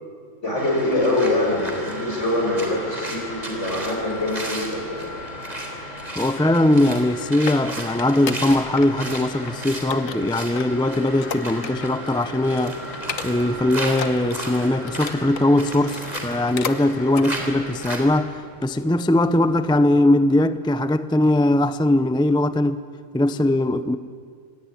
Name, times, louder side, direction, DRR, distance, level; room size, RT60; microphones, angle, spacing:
voice 1, 0.4-5.0, left 1 dB, 65° left, 7.0 m, -24 dB
sound 1, 0.5-18.0, right 1 dB, 30° right, 3.7 m, -34 dB
sound 2, 0.7-20.0, left 1 dB, 35° left, 6.8 m, -44 dB
voice 2, 6.2-12.8 13.2-22.8 23.1-24.0, left 1 dB, 5° left, 0.4 m, -20 dB
sound 3, 7.1-8.9 9.1-9.5 9.9-12.1 12.4-12.5 12.9-13.6 13.9-15.5 16.0-16.8 17.1-17.3 17.8-17.9, left 7 dB, 90° left, 1.5 m, -34 dB
27.0 x 17.5 x 9.9 m
omnidirectional pair, 1.4 m